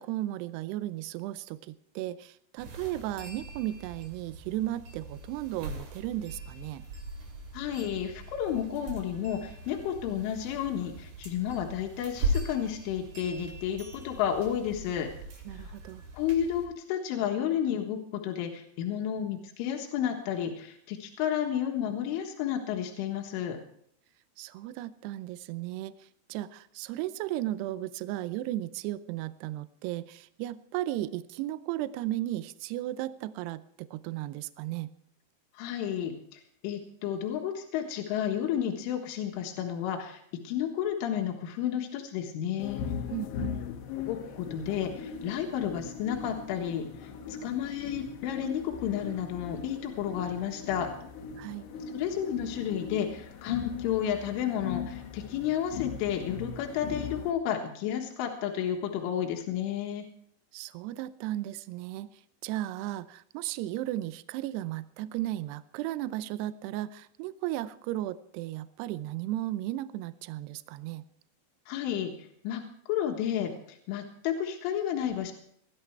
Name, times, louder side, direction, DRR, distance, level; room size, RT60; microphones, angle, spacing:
voice 1, 0.0-6.8 15.5-16.0 24.4-34.9 43.1-43.6 51.4-51.6 60.5-62.1 62.4-71.0, right 14 dB, 85° right, 15 dB, 2.4 m, -35 dB
sound 1, 2.6-16.7, right 2 dB, 45° right, 3.2 m, -39 dB
voice 2, 7.5-15.1 16.1-23.6 35.6-40.2 40.5-42.8 44.0-50.9 51.9-60.0 71.7-75.3, left 9 dB, 85° left, 2 dB, 4.0 m, -32 dB
sound 2, 42.6-57.3, left 6 dB, 65° left, 3.0 m, -39 dB
19.5 x 12.5 x 4.6 m, 0.68 s
omnidirectional pair, 5.5 m